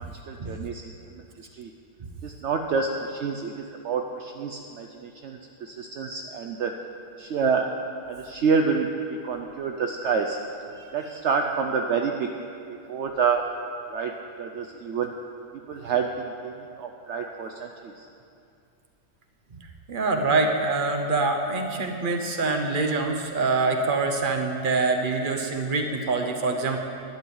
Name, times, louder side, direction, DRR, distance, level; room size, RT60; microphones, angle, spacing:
voice 1, 0.0-1.7 2.2-6.8 7.2-7.8 8.1-10.4 10.9-12.5 12.9-13.5 13.9-15.1 15.7-18.1, right 5 dB, 65° right, 4 dB, 0.7 m, -28 dB
voice 2, 19.5-26.8, right 3 dB, 35° right, 4 dB, 1.0 m, -25 dB
11.5 x 7.1 x 9.4 m, 2.6 s
omnidirectional pair, 1.8 m